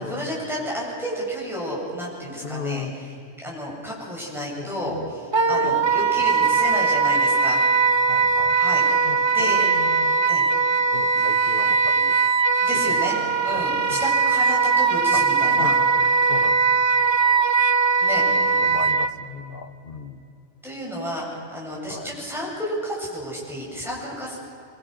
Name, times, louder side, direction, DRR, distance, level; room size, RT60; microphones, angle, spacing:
voice 1, 0.0-2.9 3.4-7.6 8.5-9.6 10.3-10.4 11.1-11.2 12.6-15.7 18.0-18.5 20.6-24.4, equal, ahead, -5 dB, 7.8 m, -31 dB
voice 2, 2.4-3.0 4.6-5.1 5.5-5.9 6.4-6.6 8.1-8.6 9.0-10.2 10.9-12.2 12.7-13.0 13.5-14.0 15.1-15.2 15.6-16.9 18.2-20.3 21.9-22.1, left 5 dB, 50° left, 8 dB, 1.4 m, -36 dB
Wind instrument woodwind instrument, 5.3-19.1, right 4 dB, 35° right, 0.5 m, -20 dB
25.5 x 24.0 x 6.3 m, 2.8 s
omnidirectional pair, 1.2 m